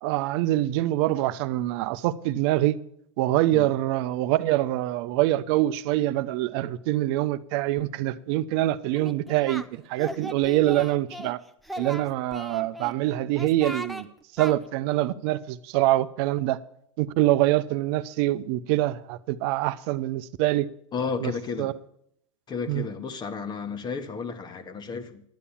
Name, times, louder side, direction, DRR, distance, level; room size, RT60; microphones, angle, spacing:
voice 1, 0.0-2.8 3.2-11.4 11.8-14.1 14.4-16.6 17.0-20.7 21.2-21.3 21.6-21.7 22.7-22.9, right 15 dB, 55° right, 0.7 m, -25 dB
Singing, 9.0-9.7 10.0-11.3 11.6-12.9 13.4-14.0 14.4-14.5, right 1 dB, ahead, 0.7 m, -37 dB
voice 2, 20.9-21.7 22.5-25.2, left 5 dB, 25° left, 1.3 m, -32 dB
11.5 x 8.4 x 7.1 m
hypercardioid pair, 110°, 17 cm